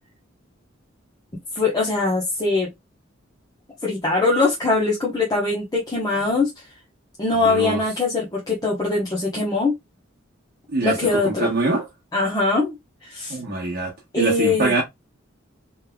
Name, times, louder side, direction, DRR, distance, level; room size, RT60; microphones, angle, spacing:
voice 1, 1.5-2.7 3.8-6.5 7.2-9.7 10.8-11.5 12.1-12.7 13.0-13.4 14.1-14.7, left 3 dB, 20° left, 1.0 m, -22 dB
voice 2, 7.4-7.8 10.7-11.8 13.3-14.8, right 2 dB, 50° right, 1.1 m, -24 dB
3.4 x 3.2 x 2.2 m
head